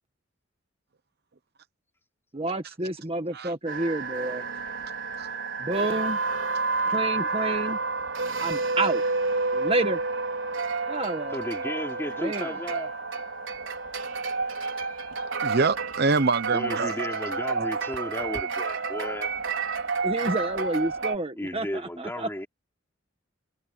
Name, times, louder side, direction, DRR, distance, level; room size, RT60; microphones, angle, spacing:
voice 1, 2.3-4.5 5.6-6.2 6.9-7.8 8.4-9.0 9.5-10.0 10.9-11.4 12.2-12.6 20.0-22.3, right 2 dB, 30° right, 1.6 m, -29 dB
sound 1, 3.7-21.2, right 4 dB, 90° right, 4.8 m, -30 dB
voice 2, 11.3-12.9 16.5-19.3 21.4-22.5, left 1 dB, 15° left, 4.2 m, -34 dB
voice 3, 15.4-16.9 17.6-17.7, right 4 dB, 55° right, 0.9 m, -25 dB
head